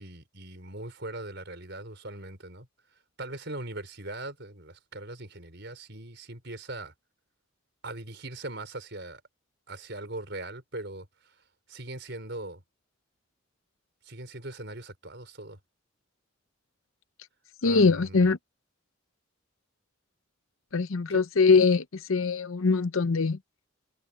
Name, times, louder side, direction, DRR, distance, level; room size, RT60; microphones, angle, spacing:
voice 1, 0.0-2.7 3.2-6.9 7.8-9.2 9.7-11.3 11.7-12.6 14.0-15.6 17.6-18.3 21.1-21.2, right 2 dB, 55° right, 5.0 m, -40 dB
voice 2, 17.6-18.4 20.7-23.4, left 4 dB, 80° left, 0.7 m, -22 dB
head